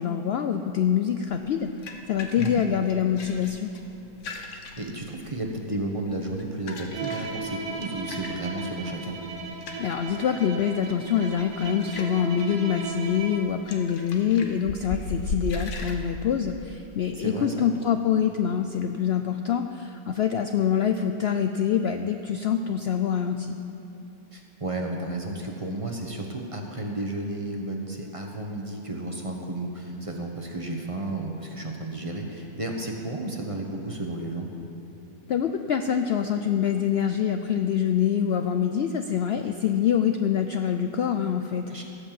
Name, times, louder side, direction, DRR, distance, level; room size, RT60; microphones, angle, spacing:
voice 1, 0.0-1.7 2.1-3.7 9.8-23.6 35.3-41.8, left 8 dB, 80° left, 7 dB, 0.5 m, -25 dB
sound 1, 1.3-16.0, left 3 dB, 55° left, 1.3 m, -39 dB
voice 2, 4.5-9.2 17.1-17.7 24.3-34.5 41.7-41.8, right 2 dB, 25° right, 1 dB, 1.0 m, -33 dB
Bowed string instrument, 6.9-13.6, right 4 dB, 75° right, 1.7 m, -36 dB
17.0 x 6.5 x 7.5 m, 3.0 s
omnidirectional pair, 1.6 m